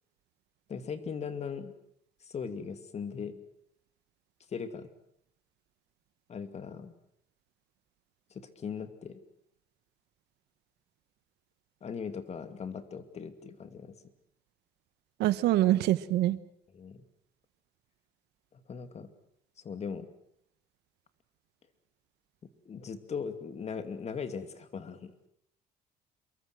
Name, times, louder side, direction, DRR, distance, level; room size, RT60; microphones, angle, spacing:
voice 1, 0.7-1.7 2.2-3.4 4.5-4.9 6.3-6.9 8.3-9.2 11.8-14.0 16.7-17.0 18.5-19.1 19.6-20.1 22.7-25.1, left 6 dB, 40° left, 9 dB, 2.5 m, -39 dB
voice 2, 15.2-16.4, right 14 dB, 80° right, 15 dB, 1.2 m, -25 dB
27.5 x 23.0 x 6.3 m, 0.73 s
cardioid pair, 110°, 17 cm